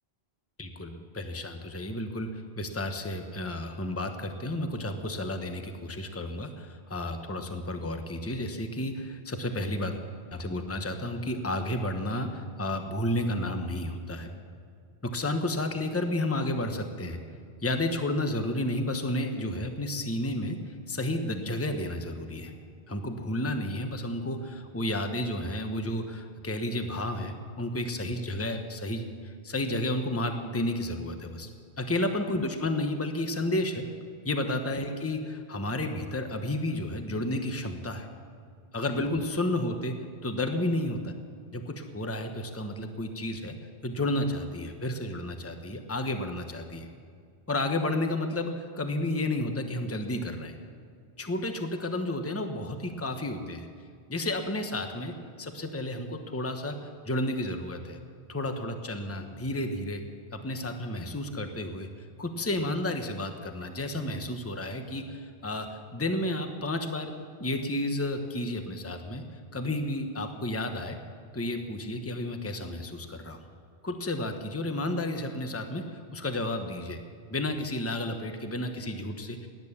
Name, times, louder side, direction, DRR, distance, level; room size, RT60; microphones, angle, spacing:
voice 1, 0.6-10.0 10.3-14.3 15.0-17.2 17.6-22.5 22.9-31.5 31.8-33.9 34.2-38.1 38.7-41.1 41.5-43.5 43.8-46.9 47.5-50.5 51.2-53.7 54.1-58.0 58.3-60.0 60.3-67.1 67.4-69.2 69.5-71.0 71.3-73.4 73.8-77.0 77.3-79.5, left 1 dB, 15° left, 6 dB, 1.0 m, -32 dB
17.5 x 10.5 x 7.2 m, 2.2 s
omnidirectional pair, 1.1 m